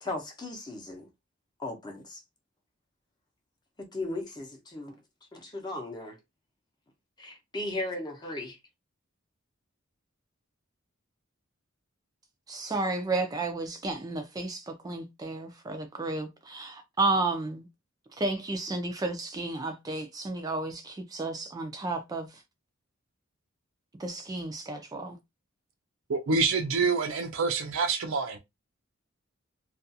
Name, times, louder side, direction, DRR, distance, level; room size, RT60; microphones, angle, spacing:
voice 1, 0.0-1.1 1.6-2.2 3.8-4.9 5.3-6.2 7.2-8.6, left 2 dB, 20° left, 0.6 m, -36 dB
voice 2, 12.5-17.7 18.2-22.4 24.0-25.2, right 2 dB, 20° right, 0.3 m, -32 dB
voice 3, 26.1-28.4, right 4 dB, 85° right, 0.5 m, -27 dB
2.4 x 2.2 x 2.7 m
head